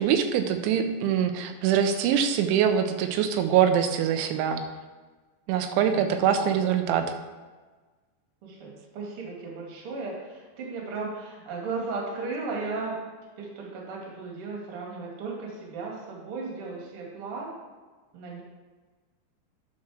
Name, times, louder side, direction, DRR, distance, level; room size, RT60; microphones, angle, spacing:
voice 1, 0.0-4.6 5.5-7.0, right 8 dB, 90° right, 6 dB, 3.2 m, -24 dB
voice 2, 5.7-6.7 8.4-13.0 13.4-17.5 18.1-18.4, right 3 dB, 45° right, -2 dB, 1.9 m, -36 dB
10.5 x 4.3 x 6.2 m, 1.3 s
omnidirectional pair, 5.2 m